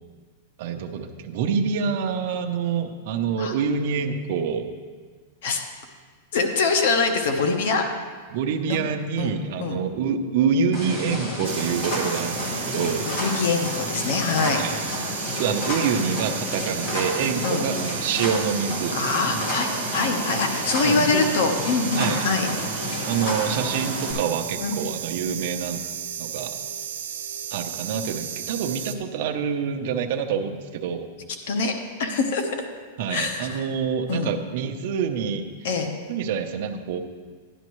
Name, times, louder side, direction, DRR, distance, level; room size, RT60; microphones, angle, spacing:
voice 1, 0.6-4.7 8.3-13.1 14.5-14.7 15.4-19.0 19.3-19.4 20.8-21.2 22.0-22.2 23.0-25.8 26.2-26.5 27.5-31.1 33.0-35.4 36.1-37.0, right 6 dB, 50° right, 4 dB, 0.7 m, -26 dB
voice 2, 6.3-7.8 8.7-8.8 9.2-9.3 9.6-9.8 13.0-14.6 17.4-17.6 18.9-22.5 24.6-24.8 31.5-31.7 32.0-32.4 33.1-33.7 34.1-34.3 35.6-35.9, left 4 dB, 60° left, 5 dB, 0.9 m, -24 dB
sound 1, 10.7-24.1, left 1 dB, 35° left, 1.8 m, -30 dB
sound 2, 11.4-29.0, right 9 dB, 85° right, 0.8 m, -34 dB
11.0 x 10.5 x 3.1 m, 1.6 s
supercardioid pair, 170°, 0 cm